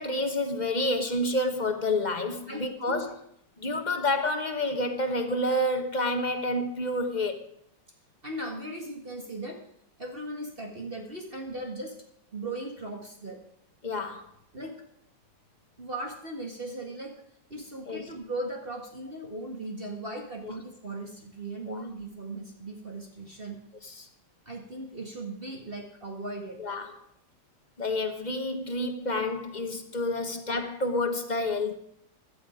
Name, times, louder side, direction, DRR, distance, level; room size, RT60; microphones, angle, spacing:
voice 1, 0.0-3.2 3.6-7.5 13.8-14.2 17.9-18.0 20.4-20.5 21.7-21.8 23.8-24.1 26.6-26.9 27.8-31.7, left 1 dB, 25° left, 6 dB, 1.3 m, -29 dB
voice 2, 2.5-3.1 8.2-9.6 10.0-12.0 12.3-13.4 14.5-14.8 15.8-17.1 17.5-23.6 24.5-26.6, right 2 dB, 30° right, 1 dB, 1.9 m, -38 dB
16.0 x 12.0 x 5.1 m, 0.68 s
omnidirectional pair, 1.9 m